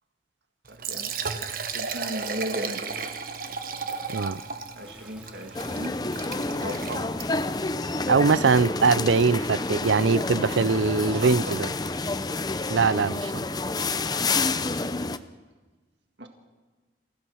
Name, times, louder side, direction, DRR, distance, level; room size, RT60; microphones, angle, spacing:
Liquid, 0.7-7.5, right 5 dB, 50° right, 1.3 m, -34 dB
voice 1, 0.7-2.8 4.7-7.2 11.1-11.6 16.2-16.3, right 1 dB, 70° right, 1.8 m, -36 dB
voice 2, 4.1-4.4 8.1-11.7 12.7-13.4, right 4 dB, 90° right, 0.6 m, -22 dB
sound 1, 4.8-13.0, equal, 5° right, 1.4 m, -49 dB
sound 2, 5.5-15.2, left 3 dB, 20° left, 0.7 m, -29 dB
28.5 x 16.0 x 6.4 m
head